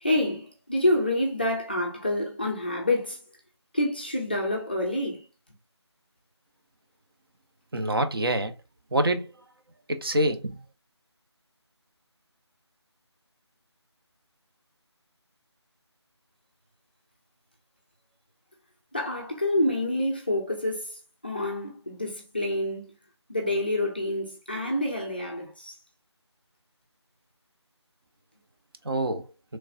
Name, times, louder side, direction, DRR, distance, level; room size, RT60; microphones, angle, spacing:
voice 1, 0.0-3.2 3.7-5.2 18.9-20.9 21.2-22.9 23.3-25.8, left 1 dB, 20° left, 0.4 m, -27 dB
voice 2, 7.7-8.5 8.9-9.3 9.9-10.6 28.8-29.2, right 1 dB, 55° right, 0.6 m, -25 dB
3.1 x 2.2 x 2.6 m
figure-of-eight pair, 165°, 15 cm